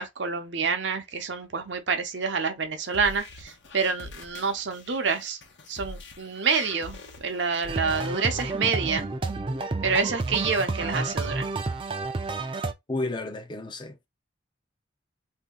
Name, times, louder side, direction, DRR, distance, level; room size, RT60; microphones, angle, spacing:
voice 1, 0.0-5.4 5.7-9.0 9.8-11.5, right 5 dB, 70° right, 0.7 m, -27 dB
sound 1, 2.8-8.0, left 2 dB, 65° left, 0.9 m, -44 dB
sound 2, 7.7-12.7, right 3 dB, 30° right, 0.4 m, -30 dB
voice 2, 12.9-14.1, left 2 dB, 25° left, 0.5 m, -32 dB
2.7 x 2.7 x 3.6 m
head